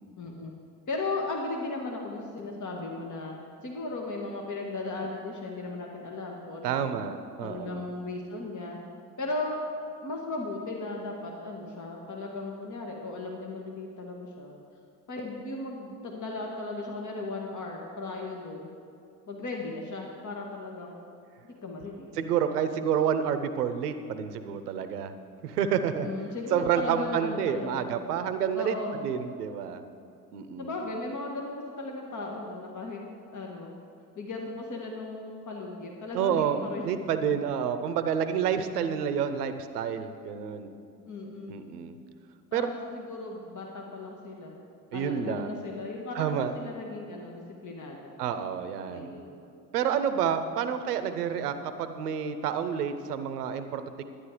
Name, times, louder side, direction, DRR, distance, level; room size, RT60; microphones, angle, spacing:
voice 1, 0.2-0.5 0.9-3.3 3.6-7.0 7.4-8.8 9.2-9.6 10.0-14.6 15.1-18.7 19.3-21.1 21.6-22.3 26.0-27.8 28.5-29.0 30.6-33.0 33.3-33.7 34.2-36.8 41.1-41.6 42.5-44.5 44.9-48.1 48.9-49.3, left 2 dB, 40° left, 0 dB, 1.8 m, -36 dB
voice 2, 6.6-7.9 22.2-25.1 25.4-26.1 26.5-28.7 29.0-29.8 30.3-30.7 36.1-40.7 41.5-42.0 42.5-42.7 44.9-45.6 46.1-46.5 48.2-49.1 49.7-54.0, right 8 dB, 90° right, 10 dB, 0.7 m, -29 dB
11.5 x 9.9 x 4.9 m, 2.5 s
hypercardioid pair, 50°, 45 cm